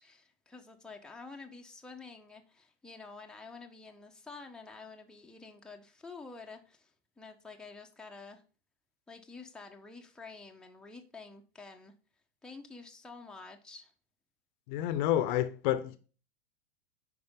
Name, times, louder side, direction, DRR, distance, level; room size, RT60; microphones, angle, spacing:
voice 1, 0.0-8.4 9.1-12.0 12.4-13.9, left 4 dB, ahead, 1.0 m, -49 dB
voice 2, 14.7-16.0, left 12 dB, 50° left, 0.9 m, -29 dB
9.5 x 5.1 x 3.7 m
hypercardioid pair, 105°, 31 cm